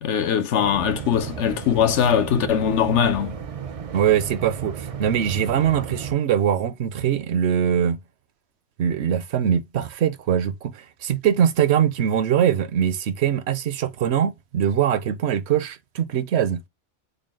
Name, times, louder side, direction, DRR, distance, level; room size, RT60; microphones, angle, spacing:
voice 1, 0.0-3.4, left 8 dB, 80° left, 1.1 m, -21 dB
sound 1, 0.6-6.1, right 7 dB, 50° right, 0.4 m, -34 dB
voice 2, 3.9-8.0 8.8-16.6, right 9 dB, 70° right, 0.8 m, -22 dB
3.9 x 2.3 x 3.5 m
omnidirectional pair, 1.2 m